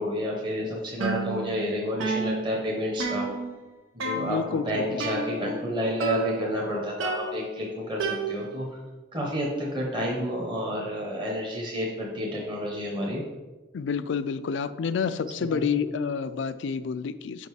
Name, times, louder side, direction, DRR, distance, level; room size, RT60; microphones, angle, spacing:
voice 1, 0.0-3.3 3.9-8.8 9.1-13.2 15.4-15.6, equal, 25° right, -2 dB, 0.9 m, -30 dB
sound 1, 1.0-1.7 2.0-3.7 4.0-4.6 5.0-5.7 6.0-6.6 7.0-8.7, right 3 dB, 85° right, 0.8 m, -32 dB
voice 2, 4.1-5.0 13.7-17.5, left 6 dB, 70° left, 13 dB, 0.4 m, -29 dB
5.4 x 5.3 x 4.7 m, 1.2 s
head